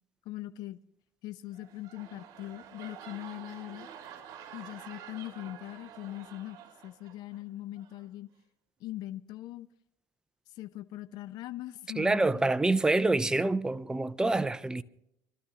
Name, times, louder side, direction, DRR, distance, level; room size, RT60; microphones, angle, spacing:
voice 1, 0.2-0.8 1.2-3.9 4.5-6.6 6.8-8.3 8.8-9.7 10.5-12.4, left 15 dB, 75° left, 0.7 m, -41 dB
sound 1, 1.4-7.4 7.8-8.1, right 9 dB, 65° right, 2.3 m, -49 dB
voice 2, 12.0-14.8, right 2 dB, 10° right, 0.6 m, -26 dB
27.5 x 13.0 x 2.9 m
cardioid pair, 110°, 7 cm